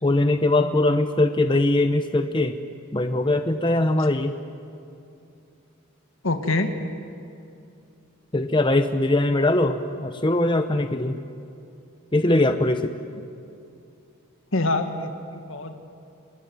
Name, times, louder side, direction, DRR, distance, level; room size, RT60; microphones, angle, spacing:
voice 1, 0.0-2.5 2.9-4.3 8.3-11.2 12.1-13.0, left 2 dB, 25° left, 8 dB, 0.8 m, -21 dB
voice 2, 6.2-6.7 14.5-15.7, left 2 dB, 75° left, 6 dB, 1.9 m, -25 dB
29.0 x 21.5 x 9.6 m, 2.6 s
head